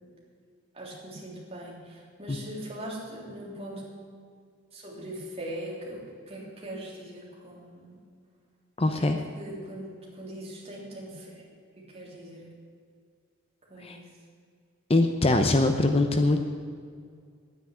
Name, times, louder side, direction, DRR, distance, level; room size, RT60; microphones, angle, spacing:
voice 1, 0.7-3.8 4.7-8.0 9.0-9.1 9.4-11.4 11.8-12.5 13.7-14.0, right 1 dB, 30° right, -4 dB, 3.4 m, -41 dB
voice 2, 8.8-9.2 13.8-14.0 14.9-16.4, left 2 dB, 30° left, 6 dB, 0.7 m, -23 dB
10.0 x 9.4 x 9.8 m, 2.2 s
head